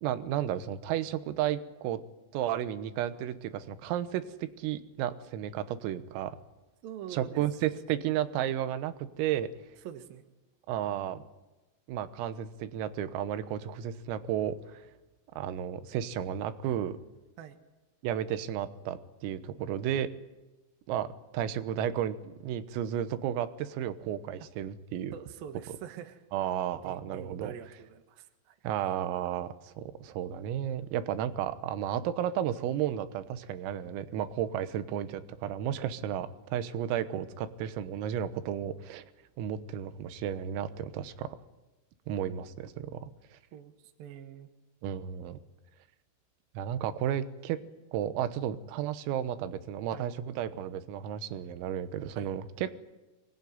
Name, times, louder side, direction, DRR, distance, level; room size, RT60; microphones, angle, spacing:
voice 1, 0.0-2.0 2.3-6.4 7.1-9.5 10.7-11.2 11.9-14.9 15.4-17.0 18.0-20.1 20.9-21.1 21.3-25.1 26.3-27.5 28.6-39.1 39.4-41.4 42.1-43.4 44.8-45.4 46.6-47.6 47.9-52.7, right 10 dB, 90° right, 12 dB, 3.9 m, -33 dB
voice 2, 6.8-7.4 9.8-10.2 17.4-17.6 25.1-26.2 26.7-28.6 43.5-44.5 49.9-50.1 52.2-52.3, right 9 dB, 65° right, 6 dB, 2.5 m, -45 dB
24.5 x 19.5 x 9.6 m, 1.1 s
omnidirectional pair, 5.9 m